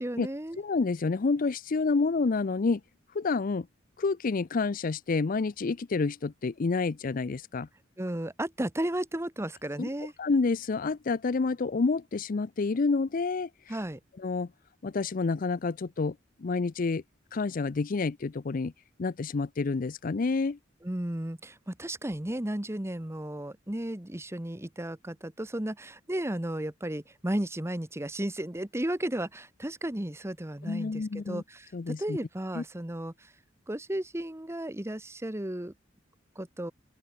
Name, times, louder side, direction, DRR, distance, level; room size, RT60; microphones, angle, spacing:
voice 1, 0.0-0.6 8.0-10.1 13.7-14.0 20.8-33.3 33.7-35.7 36.4-36.7, right 1 dB, 15° right, 1.1 m, -34 dB
voice 2, 0.6-2.8 3.1-3.7 4.0-7.7 9.8-9.9 10.2-13.7 14.2-14.5 14.8-17.0 17.3-18.7 19.0-20.6 30.6-31.4 31.7-32.2 32.5-32.6, left 4 dB, 45° left, 0.5 m, -29 dB
open air
head